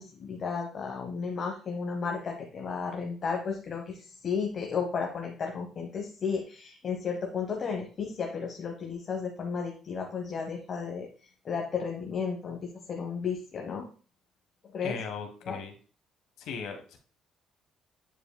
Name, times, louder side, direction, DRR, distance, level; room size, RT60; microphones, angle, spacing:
voice 1, 0.0-11.1 11.4-12.6 12.9-13.8 14.7-15.0 15.5-15.6, left 5 dB, 40° left, 2 dB, 1.0 m, -33 dB
voice 2, 14.8-15.7 16.4-17.0, left 5 dB, 80° left, 5 dB, 1.2 m, -38 dB
9.1 x 4.9 x 2.2 m, 0.39 s
cardioid pair, 135°, 0 cm